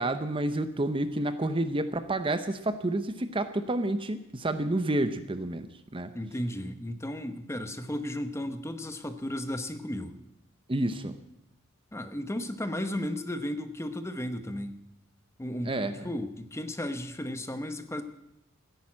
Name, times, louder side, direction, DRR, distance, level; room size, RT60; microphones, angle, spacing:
voice 1, 0.0-6.1 10.7-11.2 15.6-16.1, right 1 dB, 25° right, 10 dB, 0.8 m, -29 dB
voice 2, 6.1-10.2 11.9-14.8 15.4-18.0, left 1 dB, 15° left, 9 dB, 0.9 m, -34 dB
14.5 x 10.5 x 8.6 m, 0.86 s
head